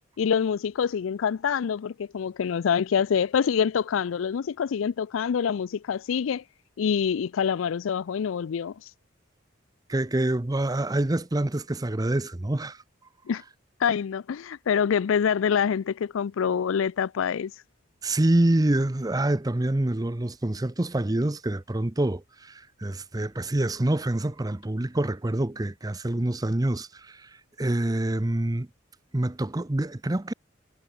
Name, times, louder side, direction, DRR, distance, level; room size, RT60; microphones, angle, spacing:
voice 1, 0.2-6.4 6.8-8.9 13.3-13.4 13.8-17.5, left 7 dB, 85° left, 0.4 m, -26 dB
voice 2, 9.9-12.8 18.0-27.2 27.6-28.7 29.1-30.3, right 1 dB, 20° right, 0.6 m, -26 dB
head